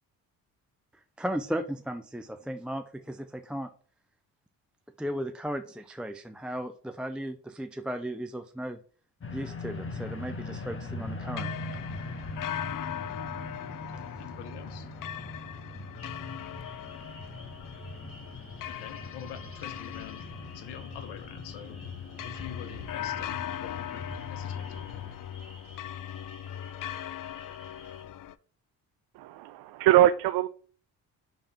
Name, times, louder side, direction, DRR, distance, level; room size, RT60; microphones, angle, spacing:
voice 1, 0.9-3.7 5.0-8.8 9.3-11.5, equal, ahead, 7 dB, 0.4 m, -35 dB
sound 1, 9.2-25.2, left 2 dB, 30° left, 1.3 m, -41 dB
sound 2, 11.4-28.3, left 11 dB, 50° left, 0.5 m, -40 dB
voice 2, 13.9-14.9 18.7-20.3 20.5-21.8 22.1-24.8, left 10 dB, 75° left, 9 dB, 1.1 m, -46 dB
sound 3, 16.0-28.0, equal, 15° left, 2.5 m, -54 dB
voice 3, 29.2-30.5, right 13 dB, 70° right, 13 dB, 0.5 m, -22 dB
5.4 x 3.5 x 5.7 m, 0.43 s
supercardioid pair, 65°, 41 cm